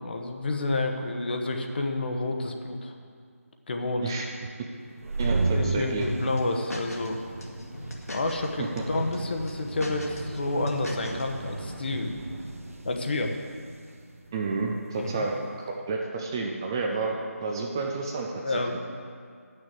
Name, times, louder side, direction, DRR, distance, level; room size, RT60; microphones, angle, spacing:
voice 1, 0.0-2.9 3.7-4.1 5.5-7.2 8.1-12.2 12.8-13.4 15.0-15.3 18.4-18.8, left 2 dB, 40° left, 4 dB, 1.0 m, -29 dB
sound 1, 4.9-15.3, right 3 dB, 65° right, 1.3 m, -35 dB
voice 2, 5.2-6.0 8.6-8.7 14.3-18.8, right 3 dB, 15° right, 0 dB, 0.5 m, -30 dB
sound 2, 6.0-7.1 7.4-8.5 8.8-9.2 9.5-11.2, equal, 80° left, 2.0 m, -38 dB
10.0 x 6.6 x 7.7 m, 2.1 s
figure-of-eight pair, 165°, 8 cm